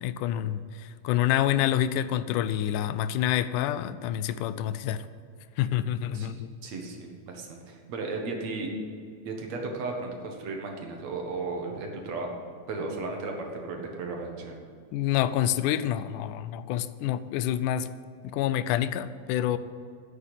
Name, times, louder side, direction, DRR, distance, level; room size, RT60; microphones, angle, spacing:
voice 1, 0.0-5.1 5.6-6.5 14.9-17.9 18.2-19.6, left 11 dB, 85° left, 14 dB, 2.1 m, -27 dB
voice 2, 6.1-8.7 9.3-12.4 12.7-14.6, right 3 dB, 65° right, 1 dB, 2.6 m, -35 dB
10.5 x 8.2 x 8.2 m, 2.3 s
omnidirectional pair, 3.5 m